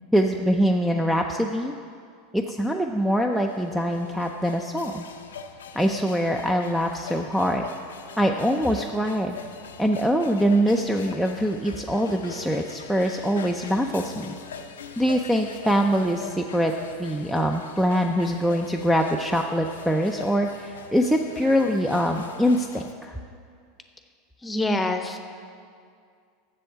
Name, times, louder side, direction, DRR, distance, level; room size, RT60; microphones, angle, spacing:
voice 1, 0.0-1.7 2.3-5.1 5.8-7.6 8.2-9.4 9.8-14.4 15.0-16.7 17.0-23.1, equal, 5° right, 3 dB, 0.5 m, -23 dB
sound 1, 3.1-22.9, left 6 dB, 80° left, 0.5 m, -42 dB
voice 2, 24.4-25.2, left 2 dB, 15° left, 7 dB, 0.9 m, -25 dB
7.6 x 7.1 x 6.9 m, 2.2 s
hypercardioid pair, 90°, 0 cm